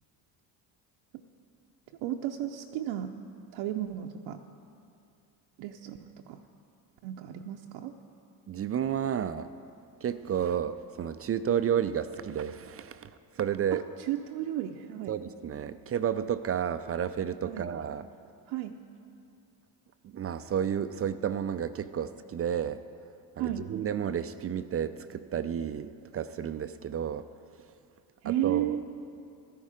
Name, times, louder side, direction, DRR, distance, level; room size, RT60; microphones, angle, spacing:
voice 1, 2.0-3.1 3.5-4.4 5.6-6.0 6.3-6.4 7.0-7.9 13.7-15.1 17.4-17.7 18.5-18.8 23.4-23.6 28.2-28.8, right 12 dB, 70° right, 3 dB, 0.7 m, -33 dB
voice 2, 8.5-9.5 10.0-13.1 13.4-13.8 15.1-18.1 20.1-22.8 23.4-27.3 28.2-28.8, right 9 dB, 30° right, 12 dB, 0.4 m, -31 dB
13.0 x 10.0 x 5.0 m, 2.5 s
supercardioid pair, 70°, 49 cm